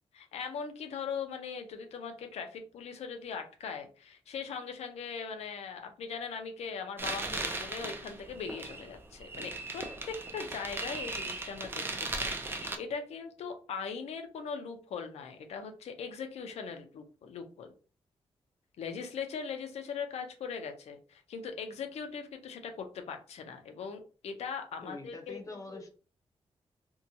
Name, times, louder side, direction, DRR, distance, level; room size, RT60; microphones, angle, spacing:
voice 1, 0.1-17.7 18.8-25.8, left 6 dB, 85° left, 6 dB, 0.5 m, -40 dB
sound 1, 7.0-12.8, right 2 dB, 20° right, 0.4 m, -37 dB
voice 2, 24.8-25.9, left 2 dB, 30° left, 2 dB, 0.6 m, -44 dB
2.7 x 2.2 x 2.6 m, 0.38 s
wide cardioid pair, 145°, 11 cm